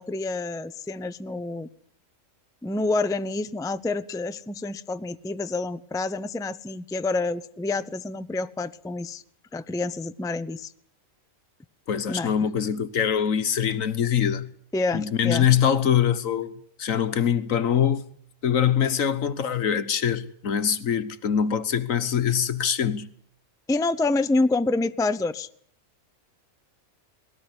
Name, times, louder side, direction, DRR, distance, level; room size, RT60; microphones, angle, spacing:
voice 1, 0.0-1.7 2.6-9.2 9.5-10.7 12.1-12.3 14.7-15.5 23.7-25.5, left 3 dB, 5° left, 0.5 m, -27 dB
voice 2, 11.9-14.5 14.9-16.5 16.8-18.0 18.4-23.1, left 8 dB, 75° left, 1.6 m, -23 dB
20.5 x 17.5 x 9.7 m
omnidirectional pair, 1.4 m